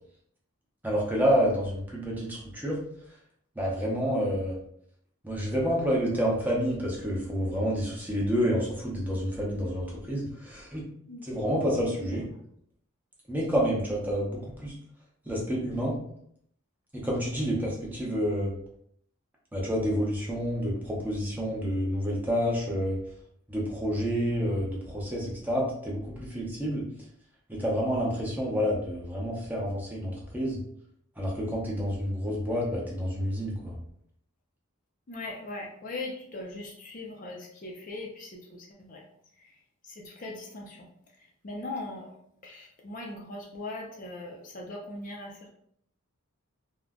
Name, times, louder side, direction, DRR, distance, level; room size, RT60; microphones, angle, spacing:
voice 1, 0.8-2.8 3.6-4.6 5.2-10.8 11.2-12.2 13.3-14.7 15.3-15.9 16.9-18.5 19.5-23.0 23.5-26.8 27.5-30.6 31.2-33.8, equal, 10° right, -3 dB, 0.6 m, -29 dB
voice 2, 35.1-39.0 39.4-39.5 39.8-40.9 41.2-42.1 42.4-45.5, left 2 dB, 40° left, -1 dB, 0.4 m, -40 dB
2.4 x 2.1 x 3.5 m, 0.69 s
head